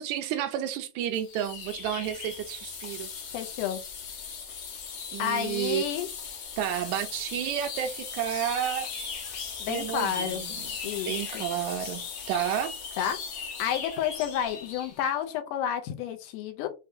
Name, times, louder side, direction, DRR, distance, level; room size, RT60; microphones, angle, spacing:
voice 1, 0.0-3.1 5.1-5.8 6.6-8.9 9.7-10.7 11.1-12.7, right 10 dB, 80° right, 1.8 m, -31 dB
sound 1, 1.1-15.0, left 6 dB, 70° left, 1.3 m, -38 dB
voice 2, 3.3-3.8 5.2-6.1 9.6-10.4 10.8-11.4 13.0-13.2 13.6-16.7, left 9 dB, 85° left, 2.2 m, -30 dB
6.3 x 2.3 x 2.6 m
omnidirectional pair, 3.6 m